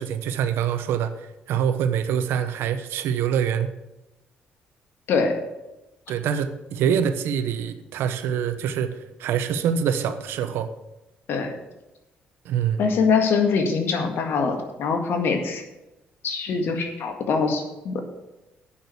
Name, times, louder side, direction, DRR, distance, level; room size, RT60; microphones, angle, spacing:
voice 1, 0.0-3.7 6.1-10.7 12.4-12.8, right 8 dB, 80° right, 11 dB, 0.9 m, -25 dB
voice 2, 12.8-15.6 16.2-18.0, left 5 dB, 70° left, 5 dB, 1.8 m, -23 dB
8.7 x 6.2 x 8.4 m, 0.97 s
supercardioid pair, 70°, 4 cm